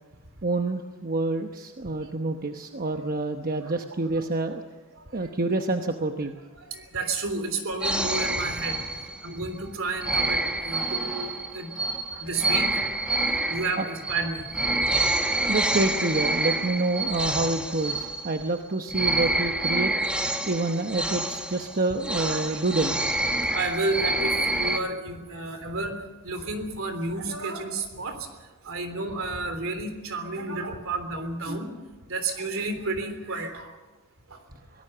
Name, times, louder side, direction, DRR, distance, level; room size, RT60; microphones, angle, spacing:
voice 1, 0.4-4.6 5.1-6.3 13.8-13.9 15.5-19.9 20.5-23.0 31.5-31.6, right 2 dB, 40° right, 5 dB, 1.0 m, -27 dB
voice 2, 4.1-4.5 4.9-5.3 6.5-11.7 12.1-12.9 13.5-14.4 19.8-19.9 22.2-22.6 23.5-26.0 26.2-31.7 32.1-33.8 34.3-34.4, right 3 dB, 65° right, 7 dB, 3.5 m, -32 dB
sound 1, 7.8-9.4 10.0-18.6 18.9-24.8, right 2 dB, 5° right, 1.3 m, -27 dB
24.0 x 18.0 x 6.8 m, 1.2 s
head